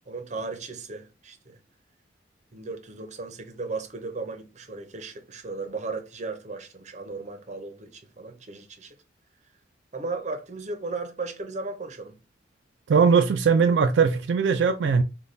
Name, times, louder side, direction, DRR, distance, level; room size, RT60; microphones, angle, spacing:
voice 1, 0.1-1.6 2.5-8.9 9.9-12.2, right 3 dB, 40° right, 0.7 m, -36 dB
voice 2, 12.9-15.0, right 5 dB, 75° right, 0.4 m, -20 dB
3.3 x 2.3 x 3.9 m
head